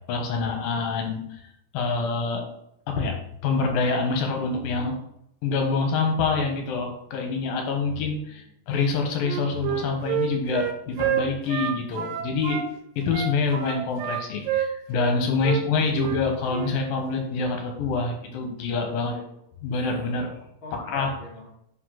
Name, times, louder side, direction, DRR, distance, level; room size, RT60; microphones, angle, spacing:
voice 1, 0.1-1.4 1.7-2.4 2.9-5.0 5.4-12.6 13.0-19.1 19.6-20.3 20.9-21.1, left 4 dB, 75° left, 3 dB, 3.0 m, -26 dB
voice 2, 7.9-8.5 19.1-19.4 20.4-21.5, left 1 dB, 40° left, -5 dB, 2.7 m, -46 dB
Wind instrument woodwind instrument, 9.2-12.7 13.1-15.2 15.4-15.6 15.9-16.2 16.5-16.7, right 10 dB, 80° right, 2.5 m, -28 dB
9.7 x 4.8 x 4.0 m, 0.75 s
omnidirectional pair, 4.1 m